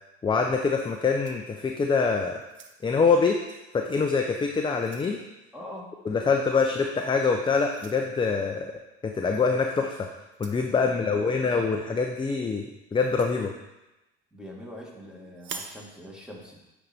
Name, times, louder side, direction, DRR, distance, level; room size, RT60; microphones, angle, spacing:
voice 1, 0.2-2.4 2.8-3.4 3.7-5.2 6.1-8.7 9.0-10.1 10.4-13.5, left 4 dB, 15° left, 3 dB, 0.5 m, -25 dB
sound 1, 0.8-2.0 2.4-3.1 3.9-4.0 4.5-5.2 6.6-6.8 7.7-8.0 9.3-9.5 10.3-10.7 12.9-13.4 15.3-15.8, right 5 dB, 40° right, 0.7 m, -45 dB
voice 2, 5.5-5.9 10.8-11.5 14.3-16.6, equal, 5° right, -2 dB, 1.7 m, -43 dB
9.0 x 4.1 x 3.5 m, 0.99 s
supercardioid pair, 90°, 29 cm